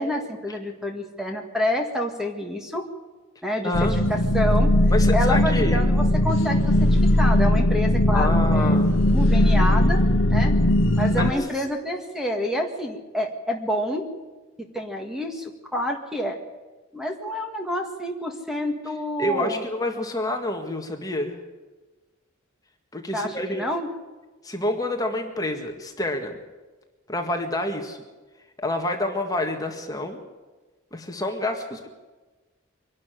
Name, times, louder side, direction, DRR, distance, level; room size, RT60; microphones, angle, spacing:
voice 1, 0.0-2.8 3.4-4.7 5.1-8.8 9.1-10.0 10.3-10.5 11.0-14.1 14.7-16.4 16.9-19.6 23.1-23.9, equal, 5° right, 3 dB, 1.8 m, -28 dB
voice 2, 3.6-4.0 4.9-5.8 8.1-8.9 11.2-11.4 19.2-21.4 22.9-23.7 24.4-26.4 27.1-28.0 28.6-30.2 30.9-31.9, left 1 dB, 20° left, 3 dB, 1.8 m, -28 dB
sound 1, 3.7-11.3, left 1 dB, 75° left, 1.0 m, -19 dB
24.0 x 12.0 x 9.2 m, 1.3 s
head